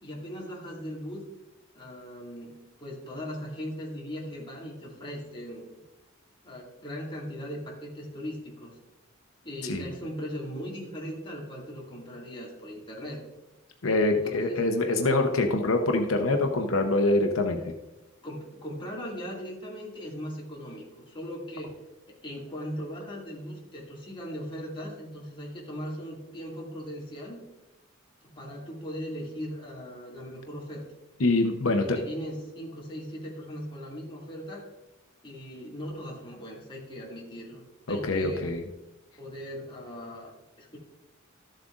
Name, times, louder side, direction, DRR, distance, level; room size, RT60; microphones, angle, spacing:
voice 1, 0.0-1.2 1.7-5.7 6.4-8.7 9.4-13.2 14.1-14.6 18.2-21.7 22.2-27.4 28.2-30.8 31.7-34.7 35.2-37.6 37.9-38.5 39.2-40.8, equal, 25° left, -4 dB, 2.2 m, -39 dB
voice 2, 13.8-17.7 31.2-32.0 37.9-38.6, left 2 dB, 80° left, 4 dB, 0.8 m, -25 dB
13.0 x 7.5 x 2.5 m, 0.98 s
head